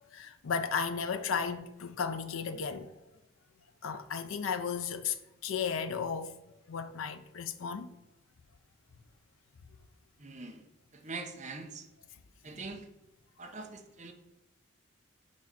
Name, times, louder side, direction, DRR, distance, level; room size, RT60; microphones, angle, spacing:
voice 1, 0.1-3.0 3.8-5.2 5.4-6.4 6.7-7.9, left 6 dB, 85° left, 0.5 m, -34 dB
voice 2, 10.2-10.6 11.0-11.8 12.4-12.8 13.4-14.1, right 3 dB, 35° right, 0.9 m, -42 dB
6.3 x 4.9 x 4.1 m
head